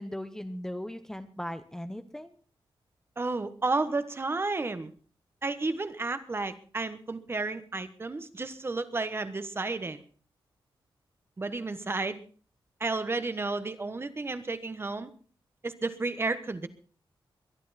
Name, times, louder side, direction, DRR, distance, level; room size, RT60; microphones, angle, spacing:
voice 1, 0.0-2.3, equal, 5° left, 9 dB, 0.8 m, -38 dB
voice 2, 3.2-4.9 5.4-10.0 11.4-12.2 12.8-15.1 15.6-16.7, right 3 dB, 25° right, 11 dB, 1.2 m, -32 dB
22.5 x 11.0 x 4.2 m, 0.41 s
wide cardioid pair, 145°, 9 cm